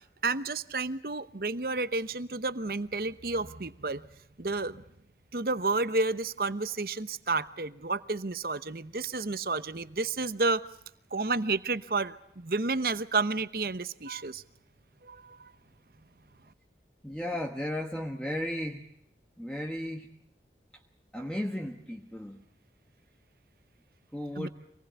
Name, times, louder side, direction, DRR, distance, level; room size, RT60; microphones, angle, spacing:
voice 1, 0.2-4.0 4.4-4.8 5.3-10.6 11.1-14.4 15.0-15.5 24.4-24.5, right 3 dB, 55° right, 14 dB, 1.0 m, -31 dB
voice 2, 17.0-18.8 19.4-20.1 21.1-22.4 24.1-24.5, left 1 dB, 5° left, 2 dB, 1.3 m, -35 dB
25.5 x 19.5 x 8.1 m, 0.76 s
head